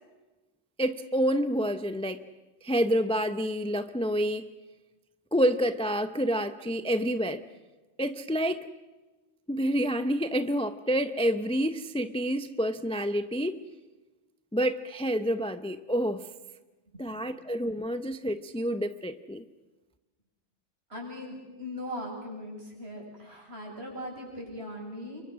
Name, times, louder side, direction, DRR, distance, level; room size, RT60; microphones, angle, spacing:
voice 1, 0.8-2.2 2.6-4.5 5.3-7.4 8.0-8.7 9.5-13.6 14.5-16.2 17.0-19.4, equal, 5° left, 10 dB, 0.6 m, -28 dB
voice 2, 20.9-25.2, left 1 dB, 60° right, -2 dB, 7.7 m, -40 dB
28.5 x 24.0 x 6.3 m, 1.2 s
omnidirectional pair, 1.2 m